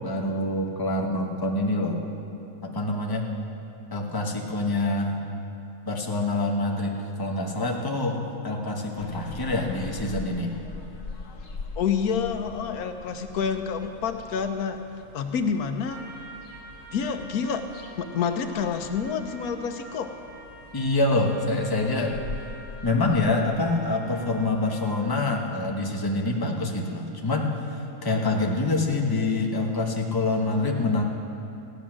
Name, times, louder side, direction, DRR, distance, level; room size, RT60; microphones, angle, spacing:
voice 1, 0.0-2.0 2.6-3.3 3.9-5.2 5.9-10.5 20.7-22.2 22.8-31.0, left 2 dB, 15° left, 0 dB, 1.0 m, -26 dB
sound 1, 9.0-24.4, left 3 dB, 65° left, 1.4 m, -42 dB
voice 2, 11.8-14.8 15.1-16.0 16.9-17.6 18.0-20.1, left 6 dB, 90° left, 7 dB, 1.3 m, -28 dB
Trumpet, 15.9-25.2, right 2 dB, 60° right, 1.7 m, -48 dB
15.0 x 9.8 x 6.2 m, 2.7 s
omnidirectional pair, 1.5 m